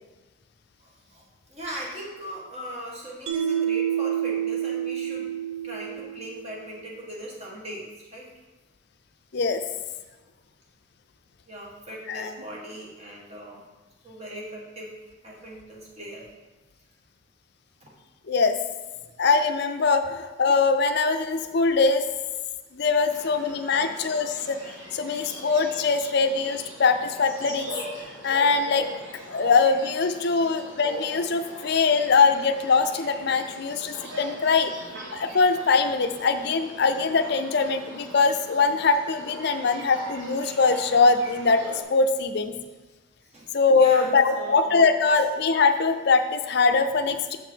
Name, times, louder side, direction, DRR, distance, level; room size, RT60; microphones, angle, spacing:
voice 1, 0.8-5.3 5.6-8.3 11.5-13.7 14.0-15.0 15.2-16.3 17.8-17.9 23.7-23.9 30.4-30.5 43.2-44.7, equal, 30° right, -4 dB, 1.6 m, -39 dB
Mallet percussion, 3.3-6.5, right 9 dB, 90° right, 0.8 m, -28 dB
voice 2, 18.3-18.6 19.2-22.0 22.7-27.7 28.2-28.9 29.3-34.7 35.1-41.6 41.9-42.5 43.5-47.4, left 4 dB, 55° left, 8 dB, 0.5 m, -22 dB
sound 1, 23.1-41.8, right 1 dB, 70° right, 1.4 m, -41 dB
6.9 x 5.3 x 4.5 m, 1.2 s
head